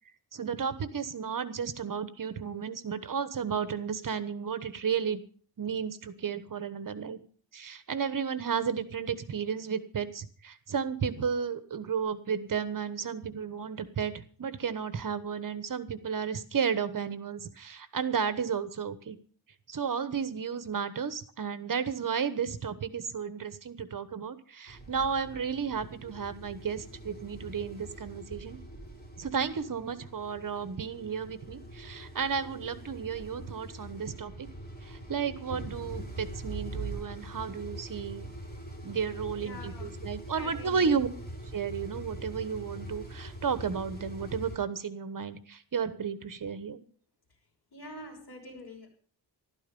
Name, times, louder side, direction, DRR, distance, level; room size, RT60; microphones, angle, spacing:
voice 1, 0.3-5.2 5.6-7.2 7.5-19.2 19.7-28.6 29.2-34.5 34.8-38.3 38.8-41.1 41.5-46.8, right 6 dB, 45° right, 12 dB, 1.2 m, -33 dB
sound 1, 24.7-44.6, right 1 dB, 20° left, 4.1 m, -43 dB
voice 2, 39.3-40.0 40.4-41.0 47.7-48.9, left 2 dB, 60° left, 1 dB, 6.0 m, -46 dB
14.0 x 12.5 x 5.3 m, 0.43 s
wide cardioid pair, 130°, 43 cm